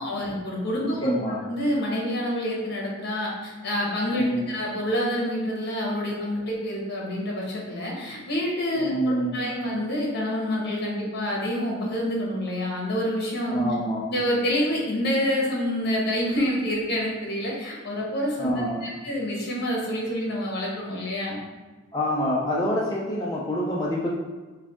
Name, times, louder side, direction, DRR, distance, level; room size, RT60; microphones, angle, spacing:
voice 1, 0.0-13.6 14.1-18.5 18.8-21.4, equal, 55° left, -3 dB, 1.1 m, -27 dB
voice 2, 0.7-1.4 4.1-4.5 8.7-9.5 13.5-14.0 18.4-18.8 21.9-24.1, equal, 20° left, -5 dB, 0.4 m, -26 dB
4.7 x 2.7 x 3.6 m, 1.3 s
head